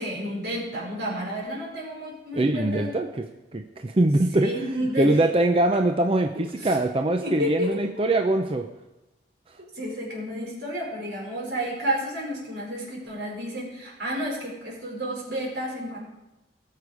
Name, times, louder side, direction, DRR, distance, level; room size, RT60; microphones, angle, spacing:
voice 1, 0.0-2.9 4.3-5.1 6.3-6.7 7.2-7.8 9.7-16.0, equal, 75° right, -2 dB, 4.5 m, -31 dB
voice 2, 2.3-3.3 3.5-8.7 9.5-9.6, right 2 dB, 30° right, 5 dB, 0.6 m, -23 dB
19.0 x 6.7 x 4.9 m, 1.0 s
head